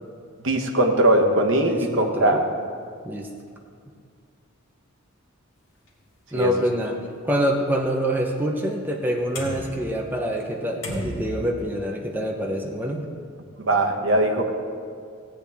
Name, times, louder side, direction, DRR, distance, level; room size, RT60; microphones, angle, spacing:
voice 1, 0.4-2.4 6.3-6.5 13.6-14.5, right 1 dB, 60° right, 2 dB, 1.2 m, -20 dB
voice 2, 1.5-2.4 3.0-3.3 6.3-7.0 7.2-13.1, right 1 dB, 10° right, 0 dB, 0.7 m, -26 dB
sound 1, 5.9-6.0 6.4-6.5 9.4-10.6 10.8-11.5, left 1 dB, 55° left, 1.7 m, -34 dB
16.5 x 8.8 x 3.5 m, 2.2 s
head